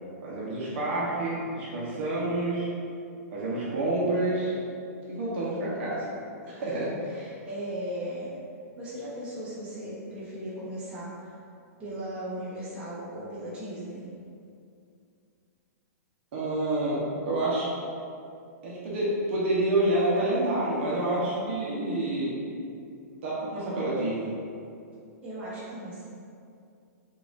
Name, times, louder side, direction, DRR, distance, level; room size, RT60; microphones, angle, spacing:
voice 1, 0.2-2.7 3.3-4.6 5.1-6.1 6.4-6.9 16.3-17.7 18.6-22.3 23.2-24.3, right 1 dB, 45° right, -7 dB, 0.9 m, -28 dB
voice 2, 7.1-8.4 8.8-11.3 11.8-14.0 25.2-26.0, right 1 dB, 15° right, -11 dB, 1.0 m, -37 dB
5.7 x 2.5 x 2.5 m, 2.5 s
hypercardioid pair, 165°, 9 cm